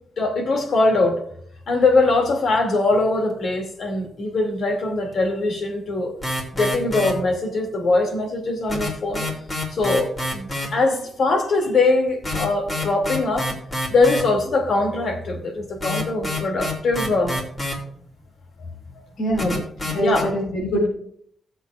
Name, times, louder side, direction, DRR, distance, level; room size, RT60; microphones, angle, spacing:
voice 1, 0.2-1.2 1.7-6.1 6.5-9.3 9.7-13.5 13.9-17.4 19.4-19.6 20.0-20.3, left 3 dB, 60° left, 3 dB, 2.3 m, -21 dB
sound 1, 6.2-7.1 8.7-10.7 12.1-14.2 15.8-17.7 19.4-20.2, left 1 dB, 30° left, 2.9 m, -27 dB
voice 2, 19.2-19.5 19.8-20.8, right 1 dB, 85° left, -4 dB, 4.0 m, -23 dB
16.5 x 7.8 x 2.4 m, 0.67 s
cardioid pair, 120°, 0 cm